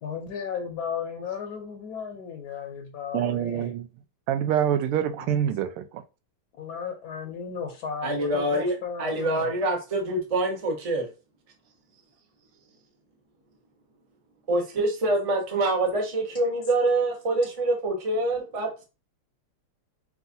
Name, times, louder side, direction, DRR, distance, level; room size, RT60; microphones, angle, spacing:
voice 1, 0.0-3.7 5.2-5.3 6.5-9.5, left 7 dB, 65° left, 1.0 m, -35 dB
voice 2, 3.1-3.9 4.3-6.0, right 10 dB, 85° right, 1.5 m, -26 dB
voice 3, 8.0-11.1 14.5-18.8, right 2 dB, 40° right, 0.5 m, -25 dB
5.8 x 2.5 x 2.6 m
omnidirectional pair, 2.4 m